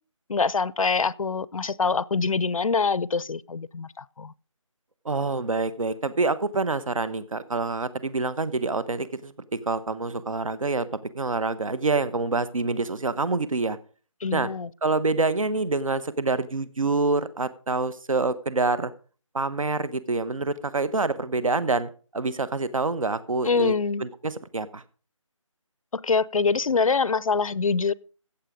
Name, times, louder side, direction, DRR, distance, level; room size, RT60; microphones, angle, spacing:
voice 1, 0.3-4.3 14.2-14.7 23.4-24.0 25.9-27.9, left 4 dB, 85° left, 0.6 m, -24 dB
voice 2, 5.0-10.9 11.1-13.8 14.3-14.5 14.8-18.9 19.3-23.7 24.0-24.8, right 3 dB, 80° right, 1.1 m, -26 dB
14.5 x 8.3 x 5.0 m
figure-of-eight pair, 175°, 17 cm